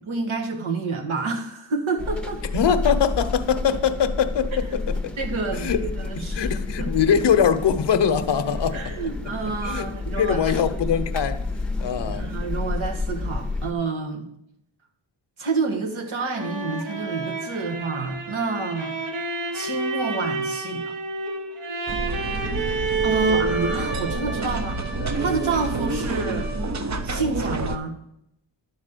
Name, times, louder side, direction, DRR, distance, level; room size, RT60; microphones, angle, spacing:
voice 1, 0.1-2.4 5.2-6.5 6.8-6.9 8.7-10.8 12.1-14.2 15.4-18.9 19.5-20.9 23.0-24.8 25.2-26.5 27.0-27.9, right 4 dB, 85° right, 1.5 m, -28 dB
sound 1, 2.0-13.7, left 3 dB, ahead, 0.7 m, -30 dB
voice 2, 2.5-5.1 5.5-5.8 6.3-8.9 9.6-9.9 10.2-11.4 11.8-12.2, left 7 dB, 60° left, 0.7 m, -22 dB
sound 2, 16.0-26.8, right 3 dB, 65° right, 1.4 m, -30 dB
sound 3, 21.9-27.8, right 2 dB, 40° right, 0.6 m, -28 dB
10.5 x 4.2 x 6.6 m
wide cardioid pair, 140°, 47 cm